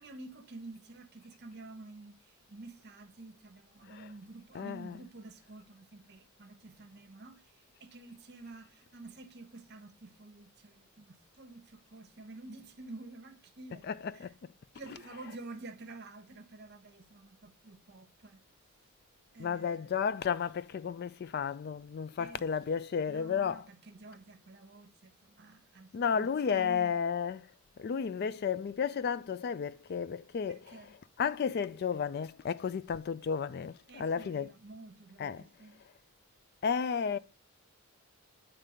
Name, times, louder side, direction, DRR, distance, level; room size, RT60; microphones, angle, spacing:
voice 1, 0.0-14.3 14.7-18.4 19.3-19.9 22.2-22.5 23.1-27.0 30.5-31.0 33.9-35.8, right 2 dB, 50° right, 0.9 m, -50 dB
voice 2, 4.6-5.0 13.9-14.3 19.4-23.6 25.9-27.5 27.8-30.7 31.2-34.5 35.2-35.4 36.6-37.2, left 6 dB, 45° left, 0.3 m, -32 dB
9.1 x 3.3 x 4.9 m
head